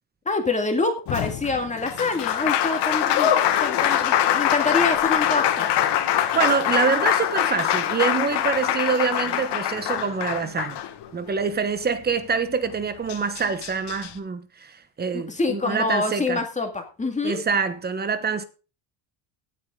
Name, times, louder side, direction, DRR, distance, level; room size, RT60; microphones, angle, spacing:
voice 1, 0.3-5.7 15.1-17.4, left 3 dB, 15° left, 2.1 m, -26 dB
Applause, 1.1-11.3 12.7-12.8 13.1-14.1, left 11 dB, 55° left, 1.8 m, -23 dB
voice 2, 6.3-10.8 11.1-16.4 17.2-18.4, right 5 dB, 20° right, 1.1 m, -25 dB
17.5 x 8.3 x 3.8 m
cardioid pair, 155°, 49 cm